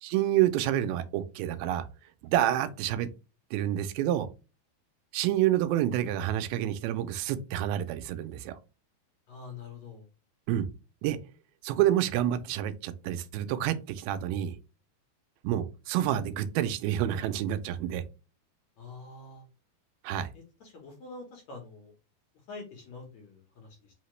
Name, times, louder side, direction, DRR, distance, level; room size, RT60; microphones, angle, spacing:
voice 1, 0.0-1.9 2.2-3.1 3.5-4.3 5.1-8.6 10.5-10.7 11.0-11.2 11.6-14.6 15.4-18.0 20.0-20.3, right 12 dB, 85° right, 2.4 m, -28 dB
voice 2, 9.3-10.1 18.8-19.4 20.3-21.9 22.5-23.9, left 4 dB, 65° left, 2.0 m, -46 dB
5.7 x 2.8 x 3.1 m
omnidirectional pair, 4.3 m